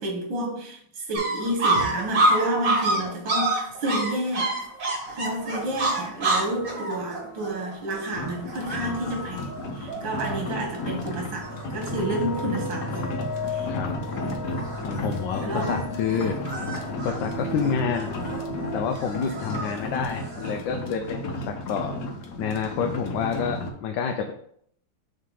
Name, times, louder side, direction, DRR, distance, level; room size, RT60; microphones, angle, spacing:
voice 1, 0.0-4.5 5.1-13.1 13.5-13.7 14.2-14.4 15.4-16.0 16.7-16.8, right 1 dB, 85° right, 1 dB, 2.0 m, -30 dB
sound 1, 1.1-10.6 11.0-11.1 11.4-12.0 12.3-13.0 13.4-13.7 14.1-20.6, right 2 dB, 70° right, 2.5 m, -28 dB
sound 2, 5.4-19.3, left 1 dB, 45° left, 1.2 m, -38 dB
sound 3, 8.1-23.7, left 2 dB, 65° left, 1.3 m, -34 dB
voice 2, 13.7-14.0 14.8-16.4 16.9-18.2 18.7-22.0 22.4-24.3, left 6 dB, 85° left, 4 dB, 1.3 m, -28 dB
6.7 x 3.2 x 4.8 m, 0.66 s
omnidirectional pair, 2.0 m